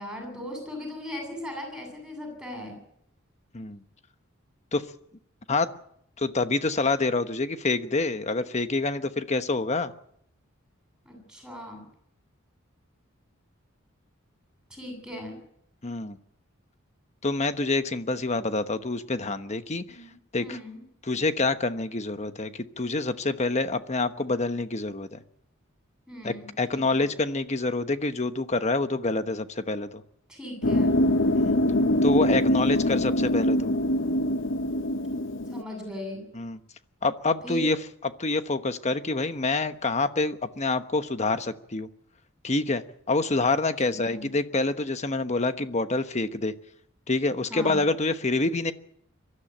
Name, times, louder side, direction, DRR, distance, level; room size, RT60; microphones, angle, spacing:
voice 1, 0.0-2.8 11.0-11.8 14.7-15.4 19.9-20.1 20.4-20.8 26.1-27.1 30.3-30.9 35.5-36.2 37.4-37.6 43.8-44.3 47.5-47.9, left 1 dB, 5° right, 3 dB, 7.9 m, -38 dB
voice 2, 6.2-9.9 15.8-16.2 17.2-20.0 20.3-20.6 21.0-25.2 26.2-30.0 31.3-31.6 32.0-33.7 36.3-36.6 37.0-37.8 38.0-41.9 42.4-42.8 43.1-46.5 47.1-48.7, left 3 dB, 35° left, 10 dB, 1.1 m, -27 dB
sound 1, 30.6-35.6, left 1 dB, 65° left, 0.9 m, -23 dB
23.5 x 13.5 x 8.9 m, 0.72 s
head